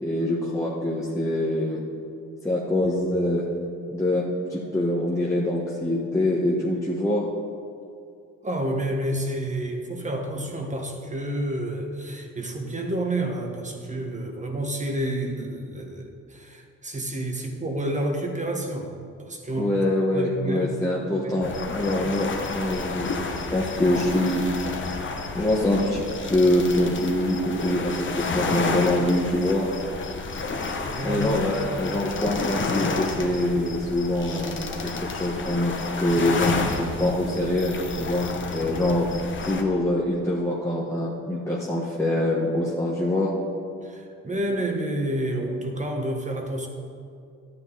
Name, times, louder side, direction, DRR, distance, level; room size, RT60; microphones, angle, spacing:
voice 1, 0.0-1.8 2.4-3.4 3.9-7.2 19.5-24.4 24.8-26.0 26.3-29.7 31.0-34.5 34.8-39.1 39.4-43.3, left 1 dB, 10° left, -6 dB, 1.6 m, -24 dB
voice 2, 8.4-19.7 20.1-21.0 21.2-21.4 30.8-31.4 43.8-46.7, right 1 dB, 25° right, 2 dB, 1.6 m, -29 dB
sound 1, 21.4-39.6, left 3 dB, 40° left, 1.3 m, -31 dB
12.5 x 9.2 x 4.2 m, 2.4 s
cardioid pair, 90°, 30 cm